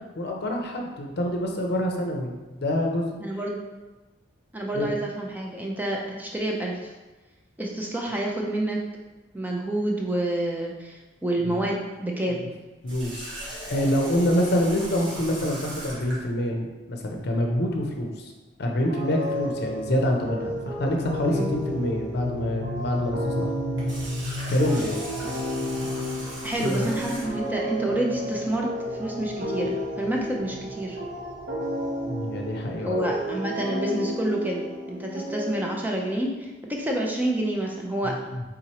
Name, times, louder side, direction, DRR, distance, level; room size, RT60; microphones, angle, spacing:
voice 1, 0.2-3.1 4.7-4.9 11.4-11.7 12.3-12.4 12.8-18.3 18.6-23.5 24.5-25.0 26.6-26.9 32.0-33.0 38.0-38.4, left 1 dB, 60° left, 2 dB, 0.6 m, -26 dB
voice 2, 3.2-3.6 4.5-6.9 7.6-8.8 9.3-12.4 21.3-21.5 26.4-28.7 29.0-31.0 32.8-38.1, right 1 dB, 10° right, -1 dB, 0.5 m, -28 dB
Water tap faucet, 12.8-16.2 23.6-27.5, right 1 dB, 90° right, 1.3 m, -38 dB
sound 1, 18.9-36.1, equal, 60° right, 1.1 m, -33 dB
sound 2, 19.4-34.1, equal, 25° right, 1.0 m, -36 dB
4.4 x 3.7 x 2.9 m, 1.2 s
head